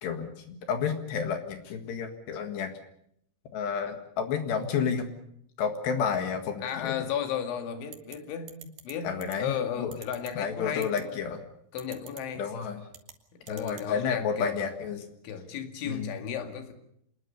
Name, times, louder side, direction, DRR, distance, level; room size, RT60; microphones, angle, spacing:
voice 1, 0.0-2.7 3.5-5.1 5.6-7.0 9.0-9.9 10.4-11.4 12.4-12.9 13.5-15.1 15.8-16.1, left 6 dB, 70° left, 6 dB, 3.8 m, -31 dB
voice 2, 6.6-11.1 11.7-12.5 13.3-14.7 15.2-16.7, left 8 dB, 90° left, 6 dB, 4.6 m, -34 dB
sound 1, 7.9-8.2 8.5-8.9 9.2-9.4 9.9-10.3 10.8-11.0 11.8-12.2 12.9-13.1 13.5-13.9, right 9 dB, 60° right, 3.0 m, -45 dB
27.0 x 20.5 x 6.8 m, 0.71 s
omnidirectional pair, 5.2 m